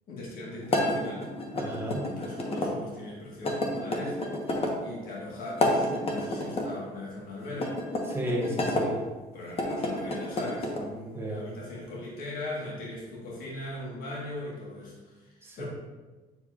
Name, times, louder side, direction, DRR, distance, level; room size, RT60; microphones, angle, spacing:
voice 1, 0.1-1.3 2.0-4.2 4.5-7.8 9.3-15.7, left 1 dB, 60° left, -4 dB, 1.5 m, -39 dB
sound 1, 0.7-2.7 3.4-4.8 5.5-6.7 7.5-8.9 9.5-10.8, left 1 dB, 35° left, 1.1 m, -30 dB
voice 2, 1.5-2.0 8.1-9.0 11.1-11.4 15.4-15.7, equal, 15° right, -2 dB, 1.3 m, -33 dB
8.6 x 4.7 x 2.5 m, 1.2 s
cardioid pair, 110°, 17 cm